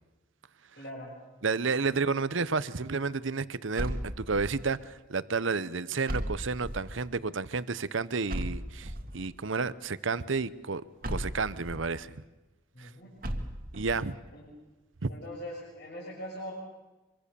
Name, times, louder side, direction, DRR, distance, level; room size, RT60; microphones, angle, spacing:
voice 1, 0.7-1.2 1.9-2.0 12.7-13.1 14.3-14.4 15.1-16.5, equal, 55° left, -5 dB, 6.6 m, -41 dB
voice 2, 1.4-12.2 12.8-12.9 13.7-14.2 15.0-15.1, right 4 dB, 70° right, 16 dB, 0.8 m, -31 dB
sound 1, 3.8-4.7 6.1-7.0 8.3-9.3 11.0-11.9 13.2-14.1, equal, 45° right, 1.9 m, -35 dB
25.0 x 24.0 x 6.9 m, 1.2 s
head